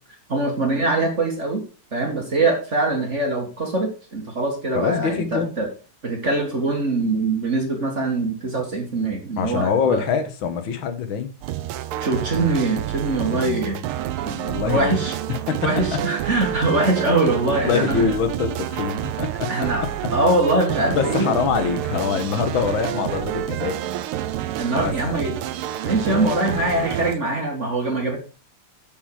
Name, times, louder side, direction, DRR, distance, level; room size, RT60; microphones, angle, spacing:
voice 1, 0.3-1.6 1.9-5.7 6.0-10.0 12.0-13.8 14.2-14.4 14.6-15.1 15.6-18.2 19.5-19.9 20.1-21.4 24.6-25.3 25.8-28.2, right 2 dB, 35° right, 1 dB, 2.0 m, -23 dB
voice 2, 4.7-5.5 9.4-11.3 13.3-13.8 14.3-14.9 15.3-15.7 17.7-19.7 21.0-23.8 24.7-25.2 26.1-26.9, left 6 dB, 70° left, 9 dB, 1.9 m, -25 dB
sound 1, 11.4-27.1, right 12 dB, 90° right, 1.6 m, -29 dB
7.4 x 6.9 x 4.7 m, 0.36 s
omnidirectional pair, 2.3 m